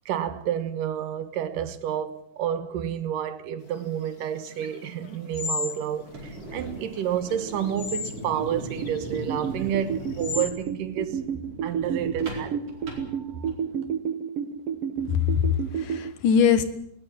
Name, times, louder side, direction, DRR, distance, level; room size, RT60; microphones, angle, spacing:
voice 1, 0.1-11.2 11.6-12.8, right 9 dB, 80° right, 2.9 m, -30 dB
sound 1, 3.7-10.5, left 5 dB, 40° left, 1.5 m, -38 dB
sound 2, 5.9-13.8, right 1 dB, 45° right, 5.6 m, -39 dB
sound 3, 8.4-16.1, right 7 dB, 60° right, 1.8 m, -31 dB
voice 2, 15.1-16.6, left 7 dB, 70° left, 2.9 m, -22 dB
20.0 x 19.0 x 8.8 m
omnidirectional pair, 3.8 m